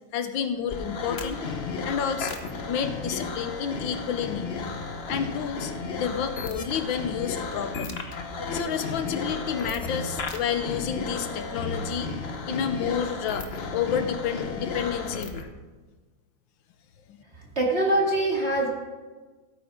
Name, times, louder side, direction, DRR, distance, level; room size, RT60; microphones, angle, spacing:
voice 1, 0.1-1.4 1.8-2.4 2.6-4.6 5.1-5.7 6.0-8.2 8.5-12.1 12.5-15.4, left 8 dB, 80° left, 9 dB, 1.5 m, -30 dB
sound 1, 0.7-15.5, left 3 dB, 45° left, 0.9 m, -33 dB
voice 2, 17.6-18.7, right 1 dB, 35° right, -2 dB, 2.5 m, -23 dB
16.5 x 8.9 x 3.6 m, 1.3 s
omnidirectional pair, 2.1 m